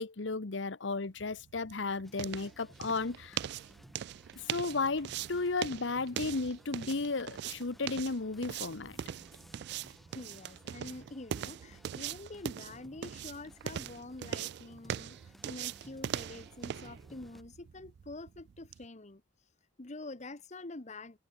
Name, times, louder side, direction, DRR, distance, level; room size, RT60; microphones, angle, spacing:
voice 1, 0.0-3.4 4.4-9.0, left 3 dB, 85° left, 1.0 m, -34 dB
sound 1, 1.0-18.9, right 9 dB, 65° right, 0.3 m, -41 dB
sound 2, 2.0-17.4, equal, ahead, 4.1 m, -58 dB
voice 2, 10.1-19.2 19.8-21.2, left 2 dB, 40° left, 1.2 m, -46 dB
head